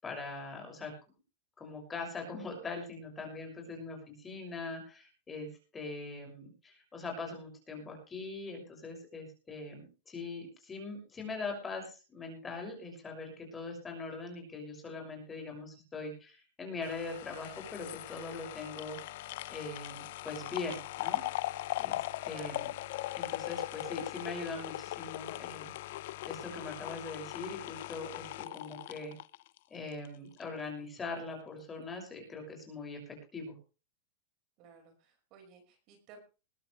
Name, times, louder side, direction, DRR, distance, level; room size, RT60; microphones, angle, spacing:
voice 1, 0.0-0.9 1.6-19.0 19.5-21.2 21.8-22.6 23.1-25.7 26.3-29.1 29.7-33.6, left 3 dB, 15° left, 3 dB, 6.2 m, -42 dB
sound 1, 16.8-30.1 30.4-30.5, left 16 dB, 60° left, 0.9 m, -39 dB
voice 2, 22.3-22.6 34.6-36.2, right 5 dB, 40° right, 6 dB, 5.3 m, -55 dB
21.0 x 11.5 x 3.3 m, 0.33 s
supercardioid pair, 160°, 0 cm